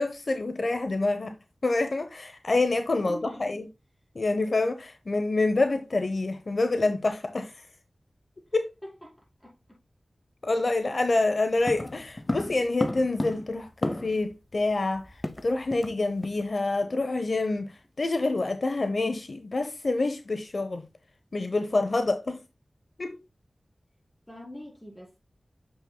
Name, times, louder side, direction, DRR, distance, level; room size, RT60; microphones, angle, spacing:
voice 1, 0.0-1.4 1.6-3.7 4.1-7.7 8.5-8.7 10.4-20.8 21.3-22.4 23.0-23.2, left 2 dB, 60° left, 0.8 m, -27 dB
voice 2, 2.9-3.6 8.8-9.8 24.3-25.2, left 1 dB, 10° left, 5.3 m, -44 dB
sound 1, 11.7-14.3 14.6-14.7 14.9-16.0 16.2-16.4 16.8-17.0, left 1 dB, 25° left, 0.7 m, -33 dB
9.0 x 7.0 x 2.2 m
wide cardioid pair, 65°, 0 cm